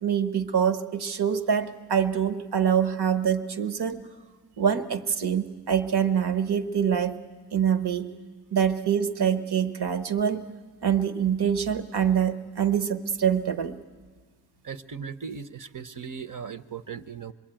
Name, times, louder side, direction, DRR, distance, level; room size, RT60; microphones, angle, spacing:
voice 1, 0.0-4.0 4.6-7.2 7.5-8.1 8.5-10.5 10.8-13.8, right 8 dB, 70° right, 11 dB, 1.1 m, -25 dB
voice 2, 14.6-17.3, right 6 dB, 50° right, 15 dB, 0.8 m, -38 dB
25.5 x 22.0 x 9.0 m, 1.5 s
wide cardioid pair, 75°, 40 cm